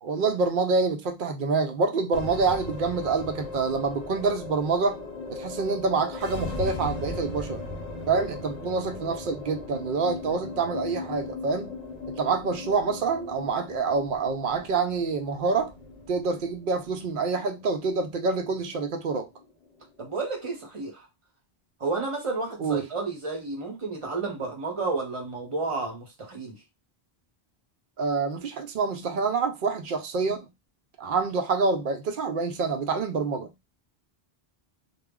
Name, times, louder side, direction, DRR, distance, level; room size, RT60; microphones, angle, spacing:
voice 1, 0.0-5.0 5.3-7.6 8.1-11.8 12.2-15.7 16.1-19.3 22.6-22.8 28.0-30.5 31.0-33.5, right 4 dB, 60° right, 0.7 m, -27 dB
sound 1, 2.1-20.6, left 2 dB, 55° left, 0.7 m, -38 dB
voice 2, 20.0-21.0 21.8-26.6, right 3 dB, 35° right, 0.8 m, -31 dB
2.1 x 2.0 x 3.5 m
omnidirectional pair, 1.0 m